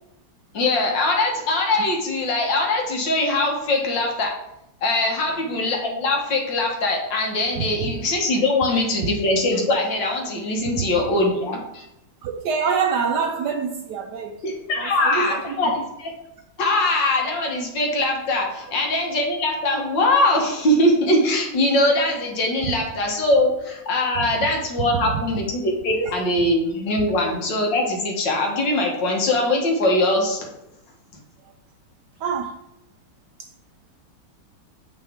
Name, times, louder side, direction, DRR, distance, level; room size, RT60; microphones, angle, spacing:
voice 1, 0.5-4.3 4.8-11.8 14.4-16.1 16.6-30.5, left 2 dB, 65° left, 2.0 m, -22 dB
voice 2, 12.2-14.4 14.7-15.6 22.6-22.7 24.2-24.3 24.8-25.2 26.0-26.1 27.0-27.1 32.2-32.6, right 6 dB, 70° right, 1.1 m, -26 dB
7.2 x 5.3 x 3.6 m
omnidirectional pair, 2.2 m